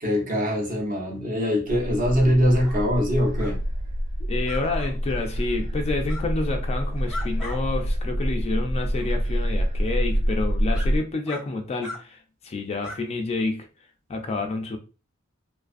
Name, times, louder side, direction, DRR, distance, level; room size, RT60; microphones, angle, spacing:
voice 1, 0.0-3.6, equal, 40° right, 0.7 m, -23 dB
sound 1, 1.7-11.0, equal, 60° right, 0.4 m, -27 dB
sound 2, 2.6-2.8 3.4-3.6 4.4-4.9 6.0-6.2 6.8-7.6 8.0-8.1 8.9-9.1 9.8-9.9 10.7-10.9 11.3-11.4 11.8-12.0 12.8-13.0, left 2 dB, 5° right, 0.6 m, -38 dB
voice 2, 4.2-12.2 12.4-13.7 14.1-14.8, left 3 dB, 30° left, 0.3 m, -29 dB
2.5 x 2.4 x 2.4 m
head